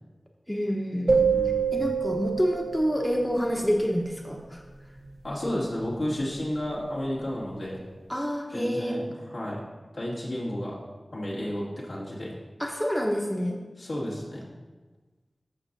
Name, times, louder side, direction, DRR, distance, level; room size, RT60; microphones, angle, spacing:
voice 1, 0.5-1.3 1.7-4.6 8.1-9.0 12.6-13.6, equal, 10° left, 0 dB, 0.9 m, -27 dB
sound 1, 1.1-3.3, right 5 dB, 75° right, 1.0 m, -26 dB
voice 2, 1.3-1.9 5.2-7.8 8.5-9.0 9.3-9.6 9.9-10.8 11.1-12.3 13.8-14.5, left 1 dB, 80° left, -6 dB, 2.4 m, -32 dB
14.0 x 5.5 x 2.7 m, 1.2 s
wide cardioid pair, 50°, 0 cm